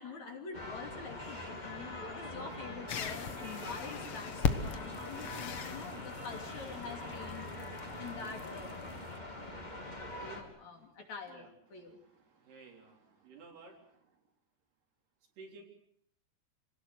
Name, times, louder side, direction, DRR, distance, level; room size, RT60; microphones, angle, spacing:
voice 1, 0.0-7.6 8.0-9.7 10.0-12.0, left 4 dB, 50° left, 3 dB, 3.8 m, -46 dB
sound 1, 0.5-10.4, left 1 dB, 10° left, 2.6 m, -44 dB
sound 2, 2.9-9.2, left 7 dB, 80° left, 1.2 m, -39 dB
voice 2, 10.7-14.2 15.4-15.6, right 3 dB, 75° right, 1 dB, 5.7 m, -57 dB
26.5 x 19.0 x 7.7 m, 0.68 s
omnidirectional pair, 4.7 m